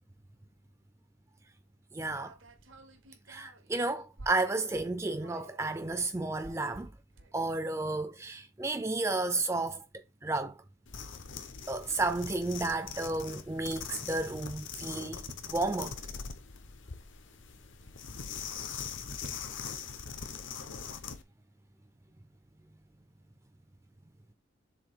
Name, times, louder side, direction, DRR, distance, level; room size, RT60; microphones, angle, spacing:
voice 1, 1.9-2.3 3.3-6.9 7.3-10.6 11.7-16.0, right 2 dB, 15° right, 0.4 m, -32 dB
sound 1, 2.1-4.7 5.0-7.7 8.4-8.5 8.8-8.9 9.3-9.4 11.1-11.2 11.8-12.0 12.3-12.4 13.8-14.0 14.9-15.6 17.9-18.3 19.0-19.6 20.3-20.5, right 2 dB, 85° right, 1.2 m, -53 dB
sound 2, 10.9-21.2, left 6 dB, 75° left, 0.9 m, -42 dB
7.2 x 2.7 x 4.9 m
head